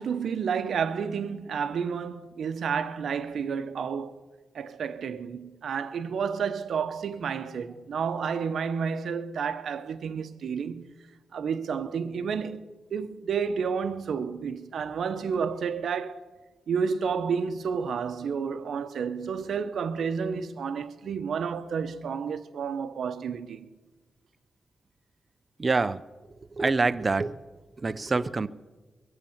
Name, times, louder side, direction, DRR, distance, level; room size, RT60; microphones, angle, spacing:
voice 1, 0.0-4.2 4.5-11.0 11.3-12.6 12.9-16.3 16.7-23.6, right 6 dB, 80° right, 0.9 m, -30 dB
voice 2, 25.6-26.0 26.5-27.4 27.8-28.5, right 3 dB, 35° right, 0.6 m, -25 dB
22.5 x 8.1 x 7.3 m
cardioid pair, 85°, 0 cm